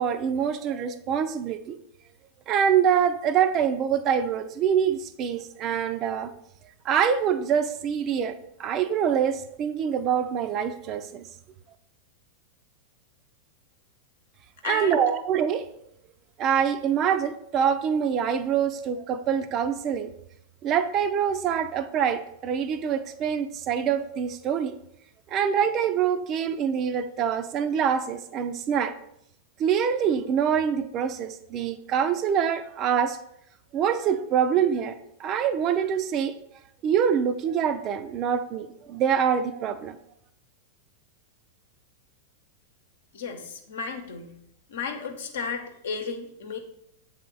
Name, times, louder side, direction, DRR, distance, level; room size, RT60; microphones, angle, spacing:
voice 1, 0.0-1.8 2.5-6.3 6.8-8.3 8.6-11.3 14.6-15.7 16.4-20.1 20.6-24.8 25.3-29.0 29.6-33.2 33.7-36.3 36.8-40.0, right 8 dB, 40° right, 10 dB, 0.5 m, -25 dB
voice 2, 14.6-15.0 43.1-44.3 44.7-46.6, left 5 dB, 70° left, 4 dB, 0.9 m, -33 dB
7.2 x 3.5 x 3.9 m, 0.75 s
hypercardioid pair, 95°, 0 cm